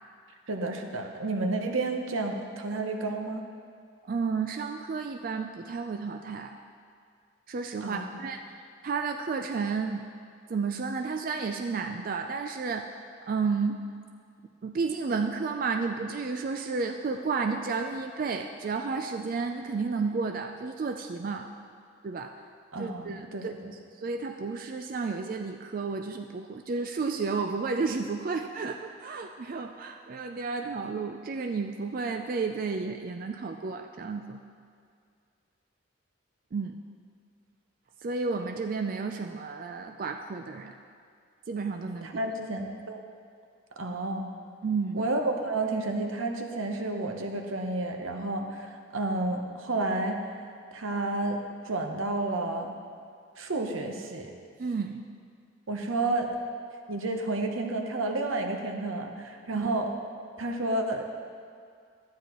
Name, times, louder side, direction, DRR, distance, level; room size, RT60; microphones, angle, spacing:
voice 1, 0.5-3.4 7.8-8.0 22.7-23.7 42.0-43.0 43.8-44.3 44.9-50.2 50.7-52.8 53.4-54.3 55.7-56.4 56.9-59.9 60.4-61.0, right 2 dB, 90° right, 3 dB, 0.9 m, -31 dB
voice 2, 4.1-6.5 7.5-8.4 8.8-10.1 10.5-12.9 13.3-13.8 14.6-21.5 22.0-22.3 22.8-23.5 24.0-34.4 36.5-36.8 38.0-40.8 41.5-42.1 44.6-45.1 54.6-55.0 59.5-59.7, right 4 dB, 45° right, 4 dB, 0.3 m, -32 dB
12.5 x 9.5 x 3.0 m, 2.2 s
head